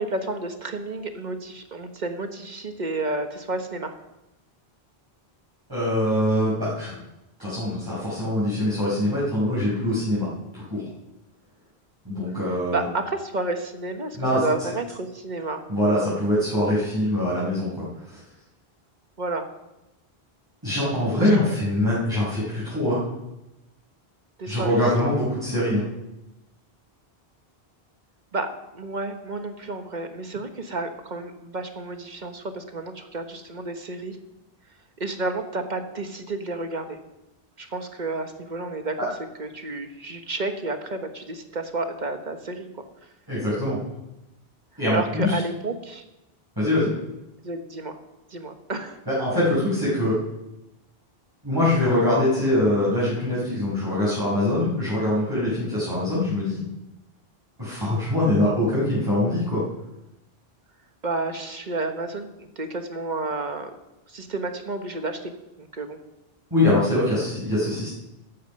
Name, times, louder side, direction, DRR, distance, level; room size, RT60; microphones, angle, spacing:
voice 1, 0.0-3.9 12.5-15.6 19.2-19.5 21.2-21.6 24.4-24.8 25.1-25.2 28.3-34.2 35.0-37.0 37.6-39.1 39.4-42.7 44.9-46.0 47.4-48.0 48.3-49.0 61.0-63.8 64.1-65.3 65.6-66.0, right 2 dB, 45° right, 6 dB, 1.4 m, -31 dB
voice 2, 5.7-6.9 7.4-10.3 10.5-10.8 12.1-12.8 14.1-14.4 15.7-18.2 20.6-23.0 24.5-25.8 43.3-43.8 44.8-45.3 46.6-46.9 49.1-50.2 51.4-56.6 57.6-59.6 66.5-67.9, left 1 dB, 20° right, -11 dB, 5.3 m, -23 dB
14.0 x 11.0 x 5.4 m, 0.95 s
omnidirectional pair, 1.0 m